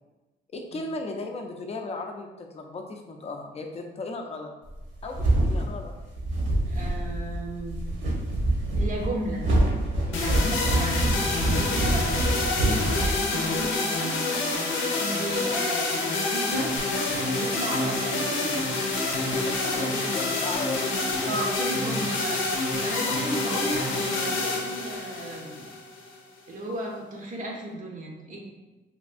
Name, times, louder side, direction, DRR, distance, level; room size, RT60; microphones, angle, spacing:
voice 1, 0.5-4.5 5.0-5.9 10.1-10.4 19.3-20.9 23.1-23.2, left 3 dB, 30° left, 3 dB, 0.5 m, -36 dB
sound 1, 4.7-13.7, right 1 dB, 65° right, 1.0 m, -26 dB
voice 2, 6.6-7.8 8.8-9.5 10.1-14.3 14.9-16.7 17.2-18.6 21.2-22.4 22.8-25.7 26.5-28.5, right 1 dB, 40° right, -1 dB, 0.6 m, -34 dB
sound 2, 10.1-26.2, left 2 dB, 80° left, 0.6 m, -27 dB
sound 3, 16.8-20.6, right 3 dB, 85° right, 1.3 m, -43 dB
3.4 x 2.3 x 2.5 m, 1.1 s
cardioid pair, 90°, 20 cm